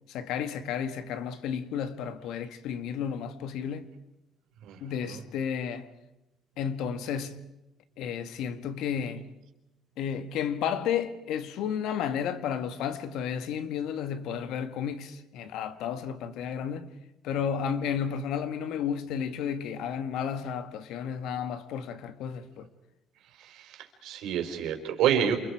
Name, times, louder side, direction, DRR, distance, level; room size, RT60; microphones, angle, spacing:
voice 1, 0.1-3.9 4.8-5.9 6.6-7.5 8.0-9.3 10.0-16.9 17.2-22.7, left 8 dB, 75° left, 1.7 m, -32 dB
voice 2, 23.4-25.4, right 9 dB, 75° right, 4.4 m, -28 dB
28.5 x 28.5 x 4.9 m
cardioid pair, 150°, 0 cm